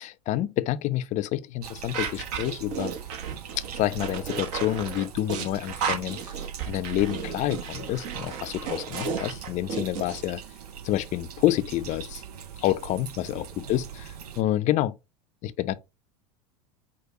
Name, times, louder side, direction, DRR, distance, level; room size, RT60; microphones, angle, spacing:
voice 1, 0.3-2.9 3.6-6.2 6.7-10.4 10.8-12.2 12.6-13.8 14.4-15.0 15.4-15.7, left 14 dB, 40° left, 0.4 m, -28 dB
sound 1, 1.6-14.4, right 9 dB, 80° right, 0.6 m, -41 dB
sound 2, 1.9-10.2, right 6 dB, 55° right, 1.0 m, -33 dB
4.8 x 2.2 x 3.9 m
hypercardioid pair, 80°, 20 cm